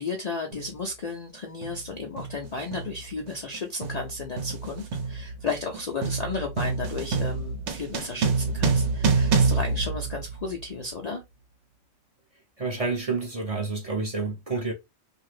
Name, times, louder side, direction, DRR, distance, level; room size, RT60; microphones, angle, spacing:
voice 1, 0.0-11.2, left 3 dB, 50° left, 0.5 m, -33 dB
sound 1, 0.5-0.7 1.6-1.9 2.2-10.7, right 4 dB, 70° right, 1.0 m, -27 dB
voice 2, 12.6-14.7, right 3 dB, 35° right, 0.7 m, -29 dB
2.8 x 2.5 x 3.1 m
omnidirectional pair, 1.2 m